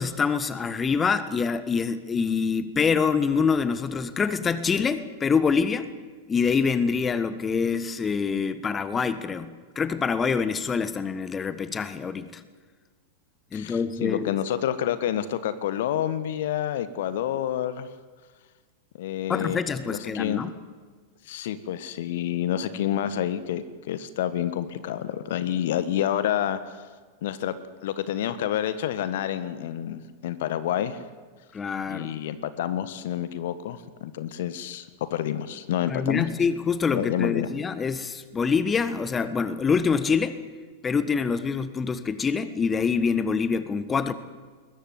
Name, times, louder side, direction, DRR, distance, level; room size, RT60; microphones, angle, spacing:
voice 1, 0.0-5.9 6.3-12.4 13.5-14.3 19.3-20.5 31.5-32.2 35.9-40.4 40.8-44.1, left 5 dB, 20° left, 13 dB, 1.4 m, -25 dB
voice 2, 13.5-17.9 19.0-20.4 21.3-26.8 27.2-27.6 27.8-31.0 31.9-36.3 36.9-37.5, left 11 dB, 55° left, 13 dB, 1.4 m, -28 dB
21.5 x 21.0 x 9.7 m, 1.5 s
figure-of-eight pair, 90°, 0 cm